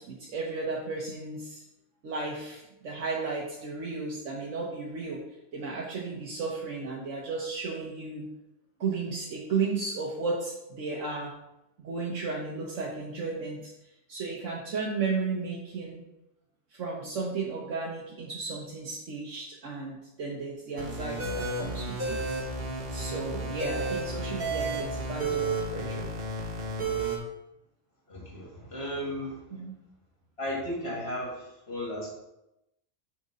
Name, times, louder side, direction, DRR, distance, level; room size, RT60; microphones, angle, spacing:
voice 1, 0.0-1.6 2.0-5.2 5.5-8.3 8.8-11.3 11.8-13.7 14.1-16.0 16.7-22.4 22.9-26.1 29.5-29.8, right 4 dB, 80° right, -3 dB, 1.4 m, -34 dB
Storm RG - Happy Energy, 20.8-27.2, right 2 dB, 50° right, 1.4 m, -32 dB
voice 2, 28.1-29.4 30.4-32.1, left 1 dB, 55° left, -3 dB, 2.5 m, -35 dB
6.4 x 4.4 x 5.0 m, 0.89 s
omnidirectional pair, 1.3 m